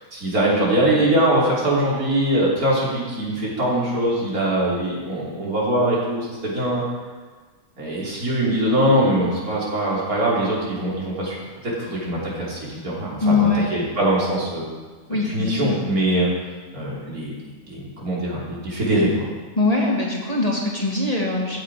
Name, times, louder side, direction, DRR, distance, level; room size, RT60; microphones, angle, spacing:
voice 1, 0.0-6.8 7.8-11.4 11.6-14.7 15.2-16.3 16.7-17.4 17.7-19.3, right 1 dB, 85° right, -6 dB, 4.1 m, -22 dB
voice 2, 13.2-13.7 15.1-15.8 19.6-21.6, left 3 dB, 25° left, -2 dB, 2.0 m, -22 dB
15.0 x 9.0 x 5.0 m, 1.4 s
omnidirectional pair, 1.5 m